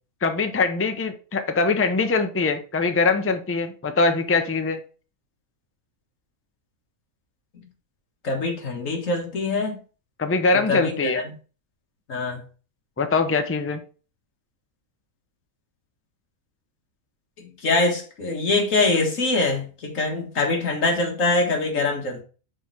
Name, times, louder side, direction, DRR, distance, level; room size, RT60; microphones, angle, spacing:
voice 1, 0.2-4.8 10.2-11.2 13.0-13.8, left 4 dB, 20° left, 0.4 m, -22 dB
voice 2, 8.2-9.8 10.7-11.0 12.1-12.4 17.6-22.2, left 3 dB, 65° left, 1.9 m, -23 dB
5.5 x 4.4 x 4.7 m
omnidirectional pair, 1.5 m